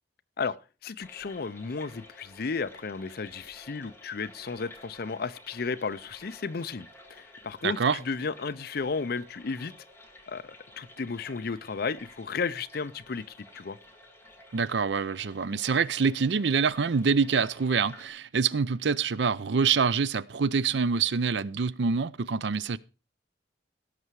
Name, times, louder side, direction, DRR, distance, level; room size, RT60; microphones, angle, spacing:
voice 1, 0.8-9.7 10.3-13.3 13.5-13.8, left 4 dB, 60° left, 0.6 m, -33 dB
sound 1, 1.0-18.1, left 1 dB, 15° left, 2.2 m, -52 dB
voice 2, 7.6-8.0 14.5-22.8, right 5 dB, 80° right, 0.5 m, -26 dB
17.0 x 6.8 x 4.7 m
head